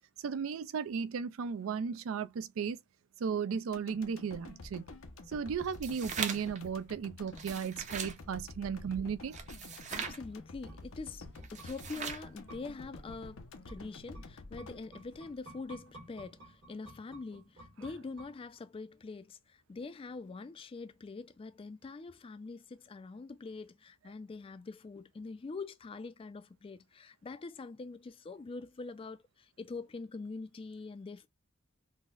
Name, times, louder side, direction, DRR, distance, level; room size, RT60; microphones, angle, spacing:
voice 1, 0.2-2.8 3.2-4.8 5.3-9.4, right 6 dB, 85° right, 0.4 m, -35 dB
sound 1, 3.7-16.0 16.3-16.4, left 2 dB, 85° left, 0.6 m, -49 dB
sound 2, 5.6-6.6 7.3-8.2 9.3-10.2 11.4-12.3, right 6 dB, 35° right, 0.6 m, -40 dB
sound 3, 9.3-18.8 19.1-19.2, right 1 dB, 60° right, 1.3 m, -56 dB
voice 2, 9.9-31.3, left 3 dB, 25° left, 0.3 m, -44 dB
3.8 x 2.1 x 2.3 m
head